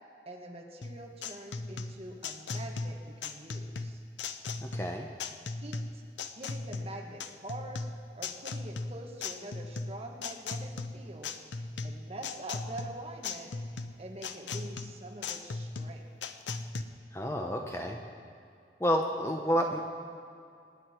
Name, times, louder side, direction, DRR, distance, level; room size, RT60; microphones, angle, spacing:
voice 1, 0.2-4.0 5.6-6.0 6.3-7.8 8.2-16.0, right 1 dB, 35° right, 0 dB, 1.8 m, -45 dB
sound 1, 0.8-16.8, left 3 dB, 90° left, 0.8 m, -38 dB
voice 2, 4.6-5.1 17.1-18.0 18.8-19.8, equal, 15° left, 2 dB, 0.9 m, -30 dB
26.0 x 9.6 x 4.6 m, 2.4 s
head